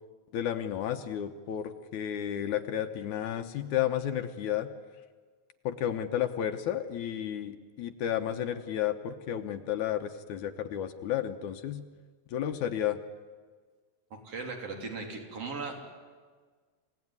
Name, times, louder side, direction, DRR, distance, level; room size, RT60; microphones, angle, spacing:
voice 1, 0.3-4.7 5.7-11.8 12.3-13.0, left 10 dB, 75° left, 7 dB, 2.3 m, -32 dB
voice 2, 14.1-15.9, right 4 dB, 50° right, 2 dB, 4.2 m, -38 dB
27.0 x 17.5 x 9.6 m, 1.5 s
omnidirectional pair, 3.6 m